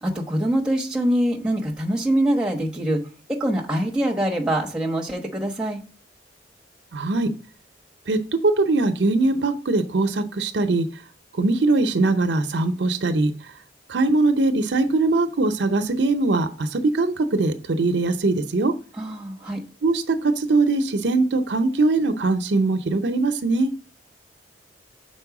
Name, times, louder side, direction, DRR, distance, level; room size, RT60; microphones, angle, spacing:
voice 1, 0.0-3.0 3.3-5.8 19.0-19.6, right 1 dB, 5° right, -1 dB, 1.1 m, -24 dB
voice 2, 6.9-7.3 8.1-10.9 11.3-13.3 13.9-18.7 19.8-23.7, right 3 dB, 70° right, 9 dB, 0.6 m, -21 dB
5.4 x 4.3 x 5.9 m, 0.38 s
head